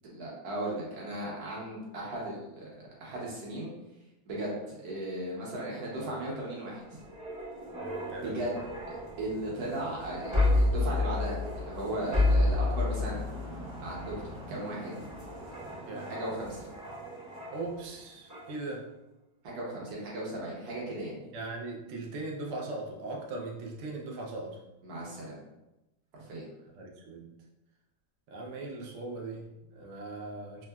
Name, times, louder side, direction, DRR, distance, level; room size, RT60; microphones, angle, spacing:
voice 1, 0.0-2.7 3.0-3.7 4.3-6.8 8.2-8.6 8.9-13.2 13.8-15.0 16.1-16.7 19.4-21.2 24.8-25.4 26.1-26.4, right 1 dB, 65° right, -4 dB, 1.3 m, -36 dB
sound 1, 5.7-17.9 18.3-18.5, left 2 dB, 20° right, 0.5 m, -32 dB
voice 2, 8.1-8.5 15.9-16.1 17.5-18.9 21.3-24.6 26.8-27.3 28.3-30.7, right 2 dB, 85° right, -1 dB, 0.7 m, -39 dB
3.5 x 2.0 x 2.2 m, 0.98 s
omnidirectional pair, 1.9 m